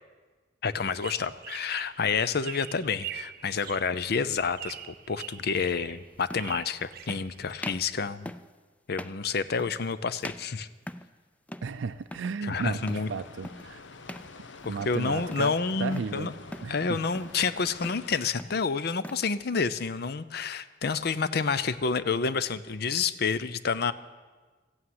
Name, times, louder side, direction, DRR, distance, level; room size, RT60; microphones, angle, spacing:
voice 1, 0.6-8.3 8.9-10.7 12.4-13.1 14.6-16.3 16.7-23.9, left 5 dB, 60° left, 15 dB, 0.6 m, -29 dB
sound 1, 0.8-7.8, right 10 dB, 55° right, 0.7 m, -44 dB
sound 2, 4.0-4.2 5.6-5.7 6.2-6.7 7.1-7.3 7.6-7.9 8.3-8.5 8.9-9.2 9.6-9.9 10.2-11.2 11.5-11.8 12.0-12.4 12.9-13.1 13.4-13.7 14.1-14.3 14.6-15.0 15.3-16.1 16.5-16.8 17.1-17.4 17.7-18.1 18.4-19.3, left 1 dB, 10° left, 0.4 m, -42 dB
voice 2, 11.6-13.8 14.7-15.5 15.8-16.3 16.6-17.0, right 5 dB, 85° right, 9 dB, 0.4 m, -34 dB
sound 3, 12.6-18.3, left 4 dB, 85° left, 0.9 m, -47 dB
14.5 x 8.7 x 9.4 m, 1.4 s
head